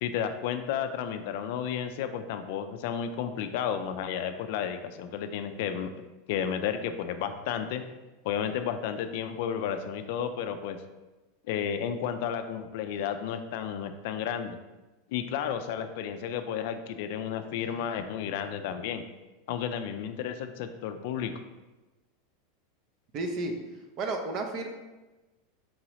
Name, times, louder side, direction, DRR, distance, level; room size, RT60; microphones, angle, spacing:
voice 1, 0.0-5.9 6.3-7.8 8.2-10.8 11.5-14.6 15.1-19.0 19.5-21.3, left 8 dB, 65° left, 9 dB, 0.3 m, -32 dB
voice 2, 23.1-23.5 24.0-24.7, right 2 dB, 45° right, 5 dB, 0.6 m, -32 dB
4.5 x 2.9 x 3.0 m, 1.1 s
supercardioid pair, 130°, 0 cm